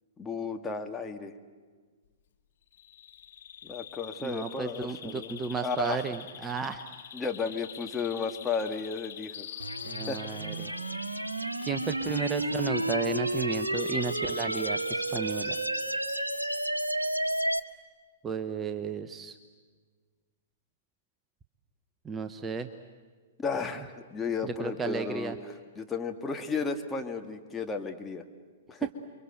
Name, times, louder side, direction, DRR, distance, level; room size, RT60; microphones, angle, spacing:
voice 1, 0.2-1.3 3.6-5.3 5.6-6.0 7.1-9.5 10.1-10.2 23.4-28.2 28.7-28.9, left 5 dB, 15° left, 4 dB, 1.7 m, -34 dB
Bird vocalization bird call bird song, 2.7-16.7, left 9 dB, 55° left, 1.3 m, -46 dB
voice 2, 4.2-6.8 9.8-10.7 11.6-15.6 18.2-19.4 22.0-22.7 24.4-25.4 28.8-28.9, right 5 dB, 15° right, 8 dB, 0.9 m, -33 dB
sound 1, 9.6-17.6, right 1 dB, 85° right, 1.1 m, -31 dB
29.5 x 23.5 x 7.9 m, 1.5 s
figure-of-eight pair, 110°, 0 cm